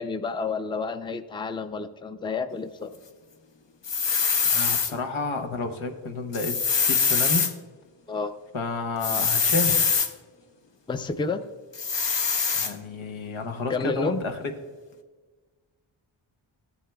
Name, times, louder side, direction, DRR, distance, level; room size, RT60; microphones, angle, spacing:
voice 1, 0.0-3.0 8.1-8.4 10.9-11.5 13.7-14.2, left 4 dB, 10° left, 10 dB, 0.4 m, -30 dB
sound 1, 3.8-4.9 6.3-7.5 9.0-10.1 11.7-12.7, left 5 dB, 65° left, 0.8 m, -23 dB
voice 2, 4.4-6.5 6.8-7.5 8.5-9.8 12.5-14.4, left 3 dB, 85° left, 5 dB, 1.0 m, -30 dB
14.0 x 7.1 x 2.3 m, 1.4 s
cardioid pair, 60°, 47 cm